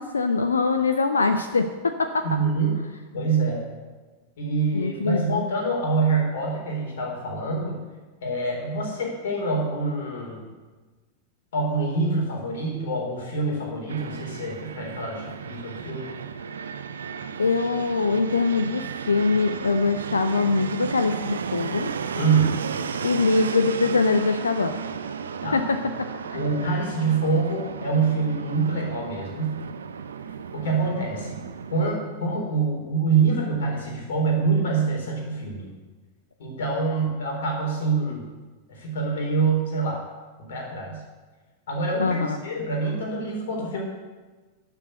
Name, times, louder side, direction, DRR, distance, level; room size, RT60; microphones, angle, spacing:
voice 1, 0.0-2.2 4.7-5.5 17.4-21.9 23.0-24.7 25.5-26.4 42.0-42.4, left 4 dB, 75° left, 8 dB, 0.6 m, -23 dB
voice 2, 2.2-2.8 3.1-3.6 4.4-7.8 8.2-10.4 11.5-16.1 22.1-22.6 25.4-25.6 26.3-29.6 30.5-31.4 31.7-35.7 36.4-38.3 38.7-40.0 40.4-41.0 41.7-43.8, right 4 dB, 60° left, -1 dB, 4.0 m, -25 dB
Fixed-wing aircraft airplane, 13.9-31.9, right 6 dB, 70° right, 0.6 m, -34 dB
11.5 x 7.0 x 8.0 m, 1.3 s
figure-of-eight pair, 90°, 0 cm